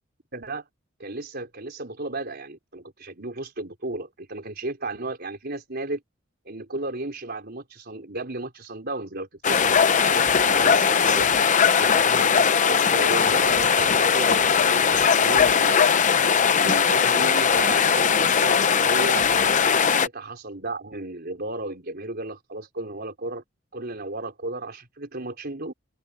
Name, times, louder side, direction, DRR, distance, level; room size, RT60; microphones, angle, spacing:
voice 1, 0.3-0.6 1.0-6.0 6.4-11.3 11.7-16.1 16.6-19.2 19.6-23.4 23.7-25.7, right 2 dB, 55° right, 4.5 m, -34 dB
sound 1, 9.4-20.1, left 6 dB, 40° left, 0.7 m, -19 dB
open air
head